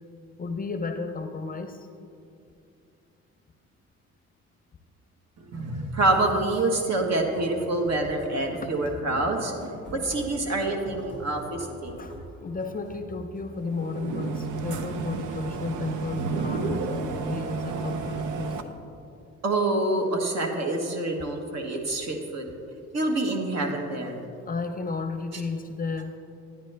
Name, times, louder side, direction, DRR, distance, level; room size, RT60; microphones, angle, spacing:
voice 1, 0.4-1.9 8.5-8.7 12.0-18.9 24.5-26.2, left 4 dB, 30° left, 7 dB, 0.6 m, -33 dB
voice 2, 5.4-9.5 9.9-12.0 19.4-22.5 22.9-24.2, right 2 dB, 60° right, 2 dB, 1.4 m, -26 dB
sound 1, 7.2-13.5, equal, 40° right, 2.0 m, -44 dB
sound 2, 13.6-18.6, right 4 dB, 80° right, 0.7 m, -31 dB
10.5 x 9.6 x 3.3 m, 2.5 s
cardioid pair, 90°, 30 cm